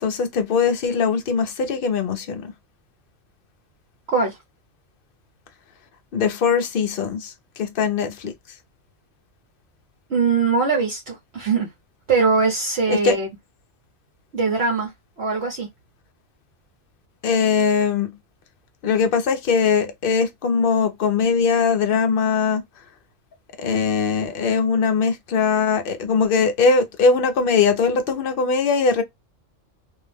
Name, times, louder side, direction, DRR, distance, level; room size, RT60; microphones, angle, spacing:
voice 1, 0.0-2.5 6.1-8.3 12.9-13.1 17.2-18.1 18.8-22.6 23.6-29.0, left 5 dB, 60° left, 0.6 m, -21 dB
voice 2, 10.1-11.7 12.1-13.3 14.3-14.9 15.2-15.7, right 4 dB, 60° right, 1.1 m, -21 dB
2.6 x 2.0 x 3.2 m
omnidirectional pair, 1.3 m